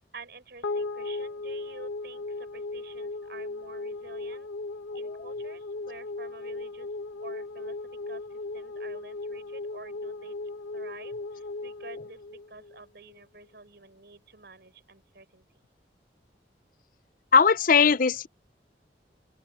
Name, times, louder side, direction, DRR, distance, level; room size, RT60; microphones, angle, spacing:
voice 1, 0.1-4.5 4.9-6.9 7.2-7.8 8.1-8.2 8.5-10.3 10.7-15.4, right 3 dB, 60° right, 7.6 m, -49 dB
sound 1, 0.6-13.1, left 3 dB, 75° left, 2.2 m, -37 dB
voice 2, 17.3-18.3, left 5 dB, 50° left, 0.6 m, -19 dB
open air
head